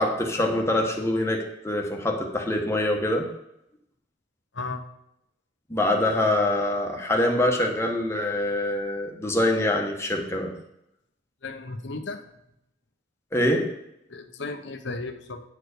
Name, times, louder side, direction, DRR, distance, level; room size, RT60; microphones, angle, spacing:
voice 1, 0.0-3.3 5.7-10.5 13.3-13.7, left 1 dB, 15° left, 1 dB, 1.2 m, -24 dB
voice 2, 11.4-12.2 14.1-15.4, left 3 dB, 70° left, 7 dB, 0.9 m, -34 dB
9.4 x 4.8 x 6.6 m, 0.81 s
head